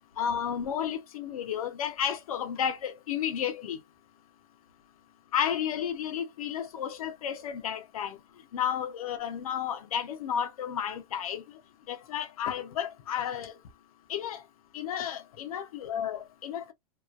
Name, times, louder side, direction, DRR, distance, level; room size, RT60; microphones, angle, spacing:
voice 1, 0.2-3.8 5.3-8.1 8.5-11.4 11.9-13.5 14.1-14.4 14.7-16.7, left 9 dB, 80° left, 0.7 m, -32 dB
3.0 x 2.3 x 2.4 m
hypercardioid pair, 140°, 18 cm